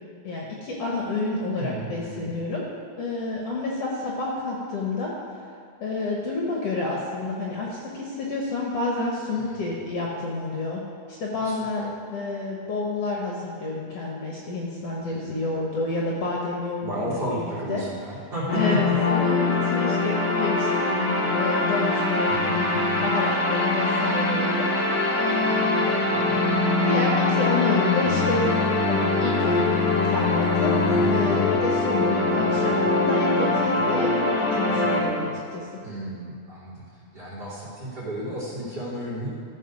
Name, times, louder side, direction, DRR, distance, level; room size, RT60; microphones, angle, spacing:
voice 1, 0.2-2.6 3.0-5.1 5.8-10.8 11.1-17.8 18.5-26.0 26.8-28.5 28.8-29.7 30.1-30.8 31.0-35.7, left 3 dB, 60° left, -3 dB, 2.1 m, -29 dB
voice 2, 1.6-2.3 9.3-9.6 11.4-11.9 15.0-15.5 16.8-18.9 22.3-23.0 26.1-26.5 30.9-31.5 35.2-35.3 35.8-36.8 37.1-39.3, right 1 dB, 30° right, -14 dB, 3.8 m, -33 dB
sound 1, 18.5-35.0, left 2 dB, 35° left, 2.3 m, -23 dB
Bowed string instrument, 28.0-33.3, left 10 dB, 90° left, 2.1 m, -31 dB
14.5 x 5.5 x 6.3 m, 2.3 s
omnidirectional pair, 3.5 m